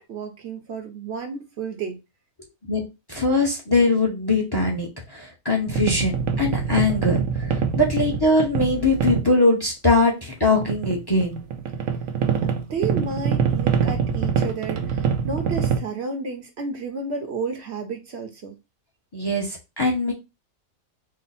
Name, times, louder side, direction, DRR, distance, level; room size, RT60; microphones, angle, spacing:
voice 1, 0.0-2.0 12.4-18.6, right 4 dB, 60° right, 0.9 m, -31 dB
voice 2, 3.1-7.5 7.8-11.5 19.1-20.1, left 2 dB, 20° left, 0.8 m, -21 dB
sound 1, 5.7-9.3 10.6-15.8, right 7 dB, 85° right, 1.1 m, -24 dB
4.2 x 2.1 x 4.0 m
omnidirectional pair, 1.4 m